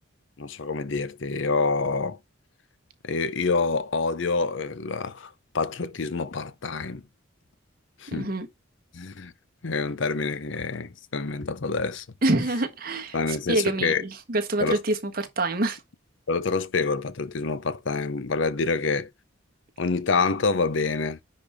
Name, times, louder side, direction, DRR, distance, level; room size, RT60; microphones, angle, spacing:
voice 1, 0.4-2.2 3.0-7.0 8.0-8.3 8.9-9.3 9.6-12.1 13.1-14.0 14.6-14.8 16.3-19.1 19.8-21.2, left 4 dB, 65° left, 0.7 m, -27 dB
voice 2, 8.1-8.5 12.2-15.8, right 2 dB, 45° right, 1.4 m, -26 dB
10.0 x 4.3 x 3.5 m
head